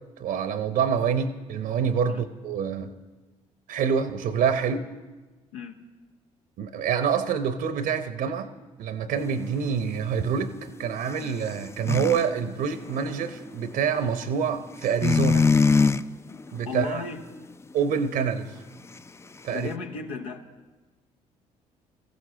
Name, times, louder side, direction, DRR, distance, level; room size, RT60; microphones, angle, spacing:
voice 1, 0.2-2.9 3.7-4.8 6.6-8.5 8.8-15.5 16.5-17.0 17.7-18.5 19.4-19.7, right 7 dB, 60° right, 12 dB, 0.8 m, -26 dB
sound 1, 9.2-12.3 12.6-13.9 14.8-16.0 16.3-16.9 17.2-17.5, left 4 dB, 15° left, 0.4 m, -23 dB
voice 2, 16.7-17.2 19.5-20.4, left 5 dB, 80° left, 5 dB, 1.0 m, -34 dB
20.5 x 15.0 x 3.9 m, 1.2 s
hypercardioid pair, 50°, 17 cm